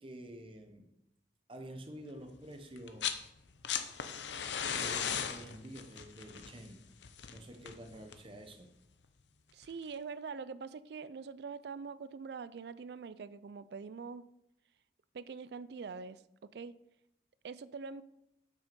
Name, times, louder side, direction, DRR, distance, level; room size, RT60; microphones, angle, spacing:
voice 1, 0.0-0.9 1.5-3.1 4.7-6.8 7.3-8.7, right 1 dB, 30° right, 6 dB, 0.9 m, -49 dB
sound 1, 2.8-3.2 3.5-8.4 9.6-9.7, left 8 dB, 85° left, 0.7 m, -37 dB
voice 2, 9.5-14.2 15.1-16.7 17.4-18.0, right 5 dB, 65° right, 15 dB, 0.4 m, -44 dB
7.6 x 6.2 x 5.3 m, 0.84 s
head